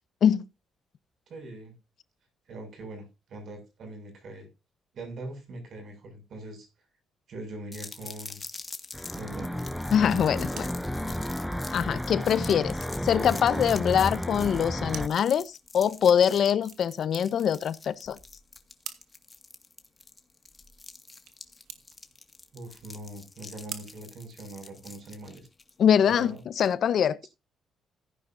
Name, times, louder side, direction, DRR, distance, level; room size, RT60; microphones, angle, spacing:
voice 1, 1.3-1.7 2.5-4.5 4.9-6.7 7.3-8.4 9.1-9.7 22.5-25.5 26.1-26.4, right 2 dB, 60° right, 6.9 m, -42 dB
sound 1, 7.7-26.7, left 3 dB, 25° left, 2.0 m, -46 dB
sound 2, 8.9-15.1, left 1 dB, ahead, 0.7 m, -32 dB
voice 2, 9.9-10.7 11.7-12.7 13.0-18.2 25.8-27.3, left 8 dB, 60° left, 1.0 m, -24 dB
sound 3, 10.4-25.0, right 10 dB, 85° right, 2.0 m, -50 dB
15.5 x 10.0 x 2.7 m
cardioid pair, 90°, 0 cm